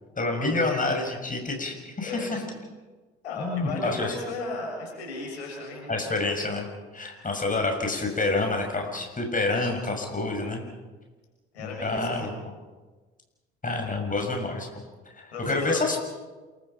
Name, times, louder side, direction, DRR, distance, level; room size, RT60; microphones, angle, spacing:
voice 1, 0.2-2.4 3.4-4.1 5.9-6.7 6.9-10.6 11.6-12.3 13.6-14.7 15.1-16.0, left 3 dB, 25° left, 3 dB, 6.5 m, -28 dB
voice 2, 2.0-2.5 3.2-5.9 11.5-12.3 15.3-15.8, left 2 dB, 80° left, 0 dB, 6.9 m, -35 dB
28.0 x 24.0 x 5.7 m, 1.3 s
hypercardioid pair, 55°, 32 cm